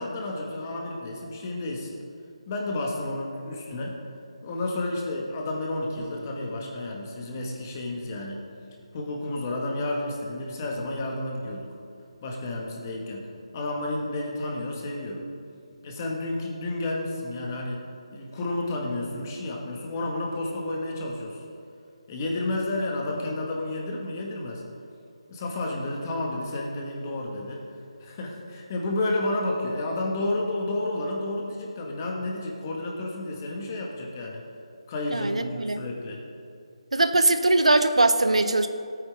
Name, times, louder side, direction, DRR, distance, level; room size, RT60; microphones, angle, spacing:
voice 1, 0.0-1.9 2.5-4.0 4.4-8.4 8.9-11.7 12.2-13.3 13.5-15.2 15.8-17.9 18.1-21.5 22.1-24.6 25.3-27.6 28.0-34.4 34.9-36.2, left 2 dB, 30° left, -1 dB, 1.8 m, -31 dB
voice 2, 35.1-35.8 36.9-38.7, right 2 dB, 85° right, 9 dB, 0.8 m, -21 dB
17.0 x 8.9 x 3.7 m, 2.4 s
figure-of-eight pair, 160°, 3 cm